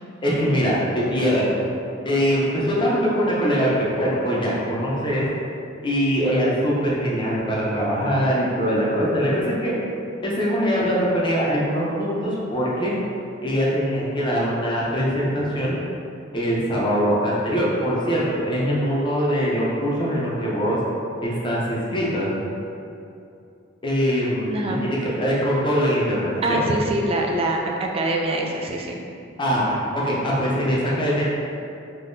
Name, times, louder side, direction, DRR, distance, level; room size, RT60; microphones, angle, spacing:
voice 1, 0.2-1.5 2.0-5.3 5.8-9.7 10.2-12.9 13.4-15.8 16.3-20.8 21.2-22.3 23.8-24.6 24.8-26.2 26.5-26.6 29.4-29.8 30.0-31.3, equal, 25° left, -6 dB, 0.6 m, -22 dB
voice 2, 24.5-24.8 26.4-29.0, right 1 dB, 30° right, 1 dB, 0.3 m, -24 dB
3.5 x 2.7 x 2.6 m, 2.6 s
head